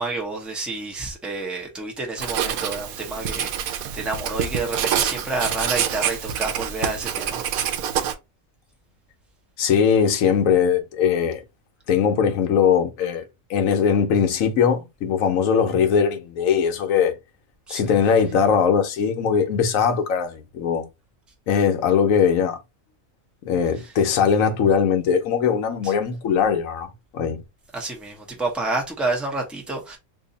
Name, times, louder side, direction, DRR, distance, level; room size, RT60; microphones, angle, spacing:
voice 1, 0.0-7.8 17.7-17.9 23.8-23.9 25.8-25.9 27.7-30.0, right 3 dB, ahead, 0.6 m, -29 dB
Writing, 2.2-8.1, right 9 dB, 80° right, 1.0 m, -26 dB
voice 2, 9.6-11.4 11.9-13.2 13.5-17.2 17.7-20.8 21.5-22.6 23.5-27.4, left 7 dB, 70° left, 1.1 m, -20 dB
2.7 x 2.7 x 3.8 m
omnidirectional pair, 1.5 m